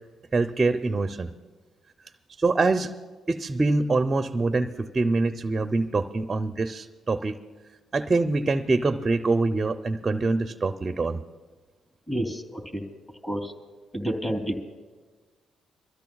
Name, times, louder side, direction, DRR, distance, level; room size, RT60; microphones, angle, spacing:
voice 1, 0.3-1.3 2.4-2.9 3.3-7.4 7.9-11.2, right 3 dB, 30° right, 7 dB, 0.6 m, -24 dB
voice 2, 12.1-12.8 13.2-13.5 13.9-14.6, equal, 20° left, 2 dB, 3.0 m, -29 dB
26.5 x 13.5 x 2.3 m, 1.4 s
cardioid pair, 90°, 0 cm